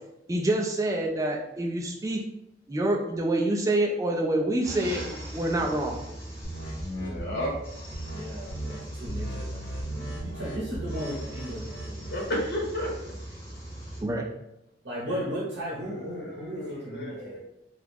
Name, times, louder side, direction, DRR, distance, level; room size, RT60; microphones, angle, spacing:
voice 1, 0.3-2.2 2.7-5.1 5.3-6.1 14.0-14.3, right 1 dB, 15° right, 0 dB, 0.3 m, -26 dB
sound 1, 4.6-14.0, right 1 dB, 15° left, 0.8 m, -40 dB
sound 2, 6.4-7.5 7.9-8.2 8.5-8.8 9.0-12.3, right 1 dB, 85° left, 1.1 m, -36 dB
voice 2, 6.9-7.5 12.1-13.1 15.1-15.2 15.9-17.4, left 1 dB, 60° left, -4 dB, 1.0 m, -33 dB
voice 3, 8.1-12.1 14.8-17.4, equal, 70° right, -5 dB, 0.8 m, -36 dB
2.9 x 2.4 x 3.4 m, 0.85 s
head